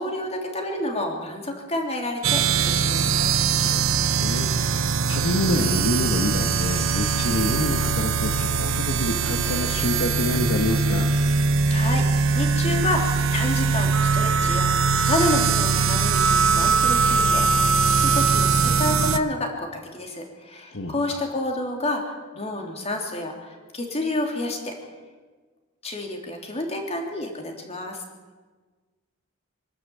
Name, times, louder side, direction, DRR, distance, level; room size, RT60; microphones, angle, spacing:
voice 1, 0.0-3.7 11.7-24.8 25.8-28.0, left 1 dB, 30° left, 2 dB, 3.3 m, -29 dB
sound 1, 2.2-19.2, right 5 dB, 75° right, 0.9 m, -21 dB
voice 2, 3.6-11.1 20.7-21.2, left 1 dB, 70° left, 4 dB, 1.6 m, -27 dB
25.0 x 12.0 x 8.5 m, 1.4 s
head